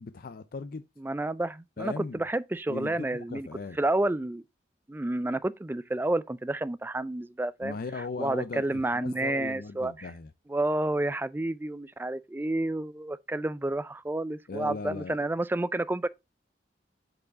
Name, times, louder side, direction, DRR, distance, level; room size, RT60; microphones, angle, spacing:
voice 1, 0.0-0.8 1.8-2.2 2.7-3.8 7.6-10.3 14.5-15.3, left 4 dB, 55° left, 0.4 m, -38 dB
voice 2, 1.0-3.5 3.8-4.4 4.9-7.7 8.2-10.1 10.5-16.1, right 2 dB, 10° right, 0.3 m, -30 dB
7.7 x 4.7 x 3.9 m
head